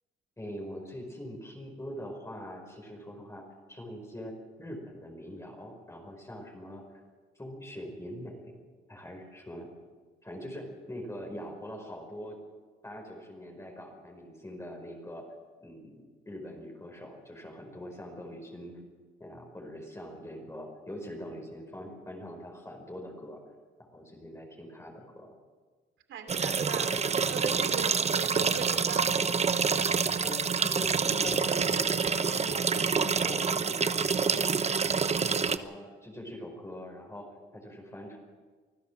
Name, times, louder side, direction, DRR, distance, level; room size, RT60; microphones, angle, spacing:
voice 1, 0.4-3.4 3.7-4.3 4.6-7.0 7.3-8.5 8.9-9.7 10.2-12.4 12.8-15.3 15.6-18.8 19.2-23.4 23.9-25.3 30.2-34.5 34.8-37.3 37.5-38.2, equal, 15° left, 1 dB, 4.9 m, -43 dB
voice 2, 26.1-29.2, right 6 dB, 75° right, 7 dB, 2.9 m, -39 dB
sound 1, 26.3-35.6, right 5 dB, 35° right, 1.0 m, -27 dB
25.5 x 14.5 x 7.3 m, 1.4 s
cardioid pair, 90°, 20 cm